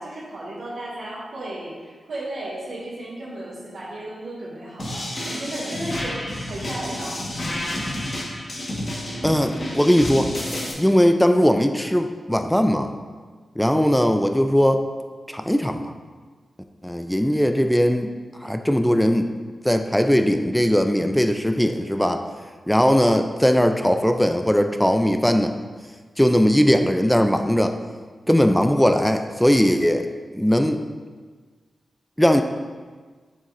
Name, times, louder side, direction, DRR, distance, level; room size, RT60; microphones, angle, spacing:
voice 1, 0.0-7.2, right 1 dB, 80° right, -10 dB, 1.8 m, -34 dB
sound 1, 4.8-10.7, left 1 dB, 45° left, 1.4 m, -30 dB
voice 2, 9.2-10.3 10.8-12.9 13.6-14.8 15.3-15.9 16.8-18.1 18.4-19.3 19.6-22.2 22.7-25.5 26.2-27.8 28.3-30.1 30.3-30.8 32.2-32.4, equal, 5° left, 6 dB, 0.4 m, -19 dB
7.1 x 6.5 x 2.6 m, 1.5 s
wide cardioid pair, 95°, 0 cm